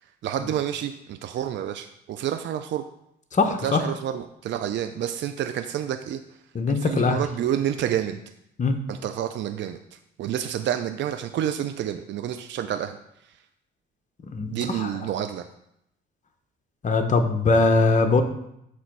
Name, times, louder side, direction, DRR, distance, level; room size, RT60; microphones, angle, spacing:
voice 1, 0.2-2.8 3.5-6.2 6.7-8.2 8.9-13.0 13.2-13.4 14.5-15.5, right 10 dB, 65° right, 8 dB, 0.5 m, -29 dB
voice 2, 3.3-3.8 6.5-7.2 8.6-8.8 14.3-14.9 16.8-18.2, left 3 dB, 40° left, 6 dB, 1.0 m, -21 dB
8.1 x 3.1 x 6.1 m, 0.78 s
cardioid pair, 90°, 20 cm